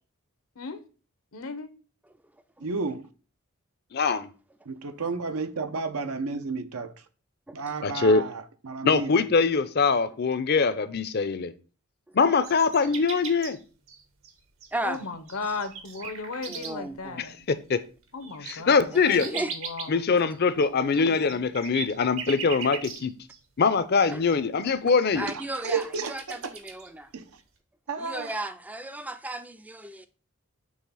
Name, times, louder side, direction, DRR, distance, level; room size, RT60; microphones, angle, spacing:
voice 1, 1.3-1.7 14.8-17.3 18.1-18.8 19.3-20.0 21.0-21.2, left 4 dB, 80° left, 0.9 m, -36 dB
voice 2, 2.6-3.1 4.7-6.9 7.5-9.1 25.3-26.5 27.1-27.2 27.9-28.3, right 4 dB, 85° right, 0.7 m, -32 dB
voice 3, 3.9-4.3 7.8-8.2 8.8-11.5 12.1-13.6 17.2-17.8 18.4-19.3 19.9-23.1 23.6-25.3, left 4 dB, 50° left, 0.5 m, -23 dB
sound 1, 12.4-13.6 13.9-14.7 14.9-17.0 18.2-23.4 23.6-23.7 24.0-24.4 24.6-26.9, right 6 dB, 70° right, 1.2 m, -39 dB
voice 4, 14.7-15.1 15.4-15.6 16.5-17.2 18.9-19.5 24.1-24.2 25.1-27.1 28.0-30.1, right 1 dB, 5° right, 0.3 m, -35 dB
6.4 x 3.3 x 5.4 m
head